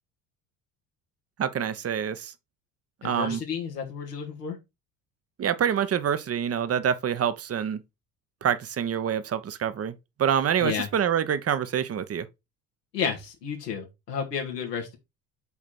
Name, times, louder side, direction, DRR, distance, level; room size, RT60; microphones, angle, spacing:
voice 1, 1.4-2.3 3.0-3.4 5.4-7.8 8.4-9.9 10.2-12.3, right 8 dB, 30° right, 1.0 m, -26 dB
voice 2, 3.0-4.6 10.6-10.9 12.9-15.0, left 7 dB, 85° left, 2.2 m, -31 dB
7.0 x 5.0 x 4.4 m
figure-of-eight pair, 60°, 47 cm